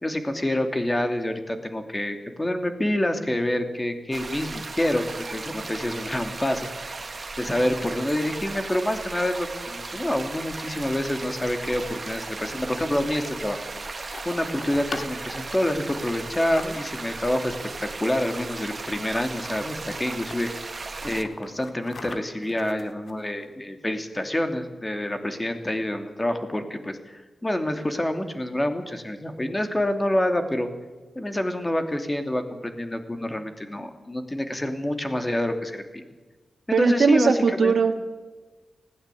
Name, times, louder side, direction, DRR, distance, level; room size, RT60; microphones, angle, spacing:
voice 1, 0.0-6.7 7.4-13.6 14.2-17.5 17.8-20.5 21.0-30.7 31.1-35.8 36.7-37.3 37.6-37.7, left 1 dB, 20° left, 7 dB, 2.9 m, -27 dB
sound 1, 4.1-21.2, right 3 dB, 40° right, 1.7 m, -36 dB
sound 2, 11.7-17.2 18.2-18.7 19.0-19.1 19.3-20.4 20.8-23.5, left 3 dB, 55° left, 2.3 m, -43 dB
voice 2, 36.7-37.9, right 5 dB, 70° right, 4 dB, 2.0 m, -20 dB
20.0 x 16.5 x 8.5 m, 1.3 s
wide cardioid pair, 90°, 0 cm